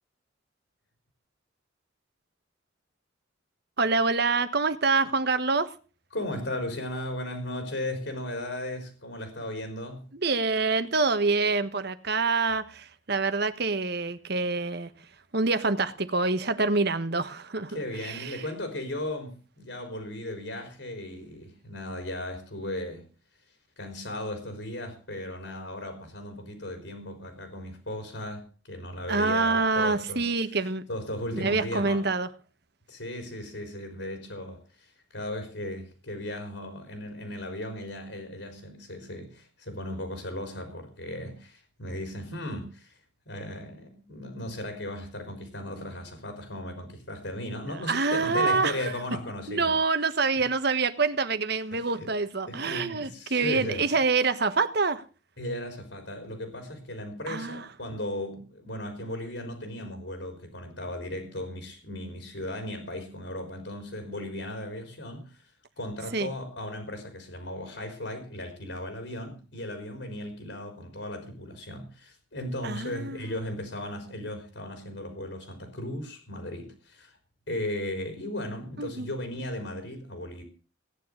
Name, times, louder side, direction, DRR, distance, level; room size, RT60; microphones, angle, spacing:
voice 1, 3.8-5.7 10.1-14.9 15.3-18.4 29.1-30.8 31.3-32.3 47.9-48.7 49.5-55.0 57.3-57.6 66.1-66.3 72.6-73.4 78.8-79.1, right 4 dB, 55° right, 1.3 m, -26 dB
voice 2, 6.1-10.1 17.7-23.0 23.8-30.2 30.9-32.1 32.9-43.0 43.3-49.8 51.7-52.1 52.5-53.9 55.4-65.4 65.8-77.2 77.5-80.4, left 1 dB, 70° left, 3.9 m, -36 dB
17.5 x 10.0 x 6.5 m
head